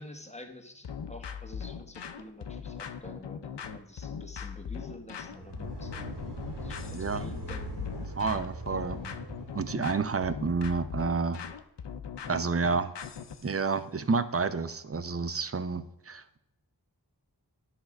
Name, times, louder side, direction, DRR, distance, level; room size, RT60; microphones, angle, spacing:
voice 1, 0.0-8.2 8.8-9.1, left 1 dB, 15° left, 5 dB, 1.0 m, -48 dB
sound 1, 0.8-13.5, left 7 dB, 85° left, 0.6 m, -40 dB
sound 2, 5.2-10.4, right 1 dB, 85° right, 2.1 m, -41 dB
voice 2, 6.9-7.2 8.2-9.0 9.5-11.4 12.3-12.9 13.4-16.4, right 4 dB, 35° right, 13 dB, 0.6 m, -29 dB
10.5 x 3.6 x 5.8 m, 0.85 s
wide cardioid pair, 45°, 41 cm